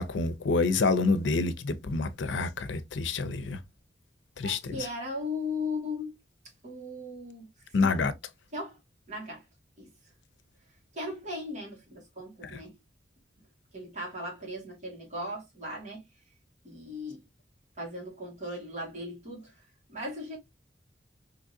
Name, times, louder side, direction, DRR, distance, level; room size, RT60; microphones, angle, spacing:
voice 1, 0.0-3.6 4.4-4.7 7.7-8.1 12.4-12.6, left 3 dB, 90° left, 0.5 m, -27 dB
voice 2, 4.4-6.2 6.6-7.5 7.8-8.0 8.5-8.8 9.1-9.5 9.8-9.9 10.9-12.8 13.7-16.0 16.6-17.2 17.8-19.5 19.9-20.4, left 2 dB, 40° right, 1.8 m, -37 dB
3.7 x 2.9 x 2.6 m
head